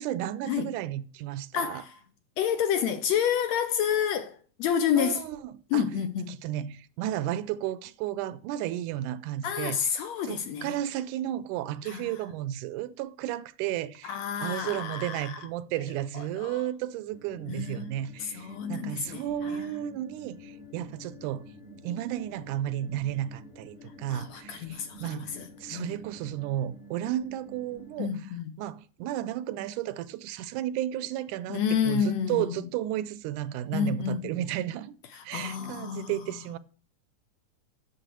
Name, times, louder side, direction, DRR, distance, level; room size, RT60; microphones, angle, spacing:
voice 1, 0.0-1.8 5.0-5.8 6.3-9.8 10.2-21.4 21.8-28.1 28.6-34.9 35.2-36.6, right 12 dB, 80° right, 2.0 m, -33 dB
voice 2, 1.5-2.0 2.4-5.2 5.7-6.4 9.4-10.8 11.8-12.1 14.0-15.4 16.1-16.6 17.5-17.9 18.2-19.7 24.1-26.1 28.0-28.6 31.5-32.6 33.7-34.4 35.1-36.2, left 8 dB, 75° left, 1.7 m, -30 dB
sound 1, 17.1-28.0, left 1 dB, 45° left, 2.7 m, -49 dB
6.7 x 6.5 x 7.5 m
omnidirectional pair, 3.6 m